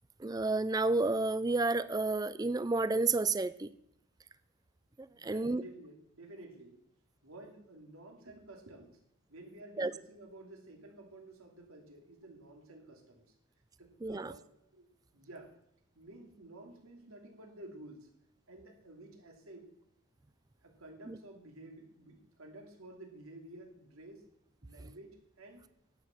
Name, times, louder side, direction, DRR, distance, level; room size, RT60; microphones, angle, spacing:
voice 1, 0.2-3.7 5.0-5.6 9.8-9.9 14.0-14.3 21.1-21.2, right 3 dB, 15° right, 16 dB, 0.4 m, -31 dB
voice 2, 5.1-6.8 7.2-9.0 9.3-13.2 13.8-15.5 15.9-18.1 18.5-19.7 20.6-24.2 24.6-25.6, right 2 dB, 85° right, 2 dB, 2.7 m, -52 dB
11.0 x 9.2 x 5.9 m, 0.75 s
head